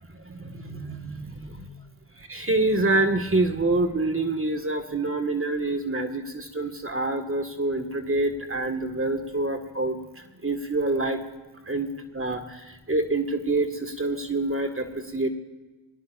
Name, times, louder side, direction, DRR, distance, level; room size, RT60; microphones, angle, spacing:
voice 1, 0.2-1.7 2.2-10.0 10.4-11.2 11.7-15.3, right 2 dB, 30° right, 6 dB, 1.8 m, -26 dB
22.5 x 18.0 x 2.6 m, 1.2 s
cardioid pair, 50°, 46 cm